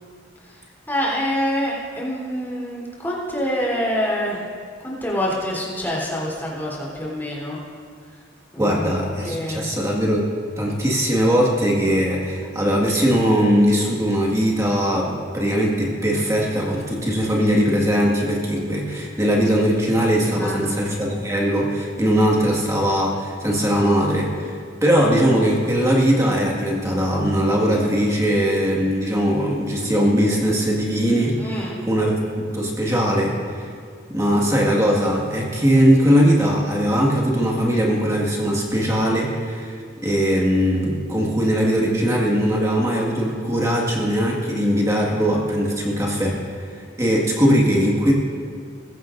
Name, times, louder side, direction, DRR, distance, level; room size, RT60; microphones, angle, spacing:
voice 1, 0.9-4.4 4.8-7.6 8.5-8.9 9.2-9.7 20.2-20.6 31.4-31.8, equal, 10° left, -5 dB, 3.6 m, -26 dB
voice 2, 8.6-10.3 10.6-24.5 24.8-33.7 34.1-39.8 40.0-46.4 46.7-48.1, equal, 15° right, -3 dB, 1.8 m, -20 dB
22.0 x 15.5 x 2.6 m, 2.2 s
head